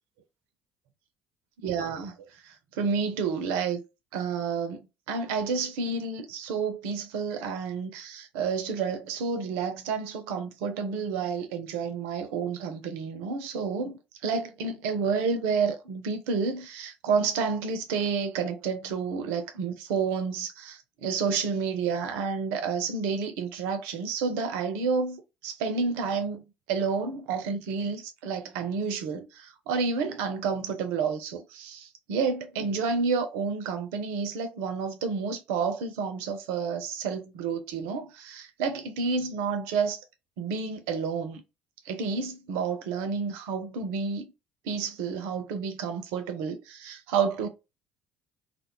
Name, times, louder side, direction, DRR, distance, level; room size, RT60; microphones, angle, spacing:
voice 1, 1.6-2.1 2.4-3.8 4.1-4.8 5.1-26.4 26.7-40.0 40.4-41.4 41.9-44.3 44.6-47.5, right 5 dB, 65° right, 0.4 m, -30 dB
2.2 x 2.0 x 2.9 m
figure-of-eight pair, 55°, 4 cm